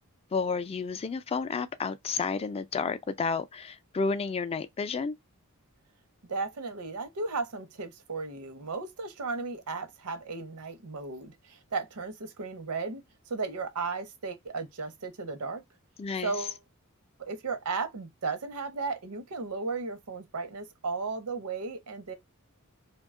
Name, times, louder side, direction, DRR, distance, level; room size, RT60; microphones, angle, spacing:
voice 1, 0.3-5.1 16.0-16.3, left 4 dB, 25° left, 0.3 m, -31 dB
voice 2, 6.3-15.6 16.2-16.6 17.2-22.1, right 4 dB, 90° right, 0.7 m, -35 dB
2.7 x 2.2 x 3.6 m
head